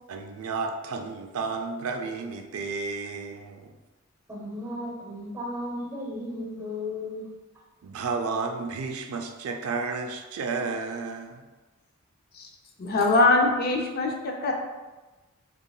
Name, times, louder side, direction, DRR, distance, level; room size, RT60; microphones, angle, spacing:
voice 1, 0.1-3.8 7.8-11.4, right 4 dB, 80° right, 5 dB, 0.4 m, -32 dB
voice 2, 4.3-7.3, left 1 dB, 15° right, -2 dB, 0.8 m, -35 dB
voice 3, 12.8-14.5, left 2 dB, 45° left, 1 dB, 0.5 m, -22 dB
6.6 x 2.4 x 2.3 m, 1.2 s
head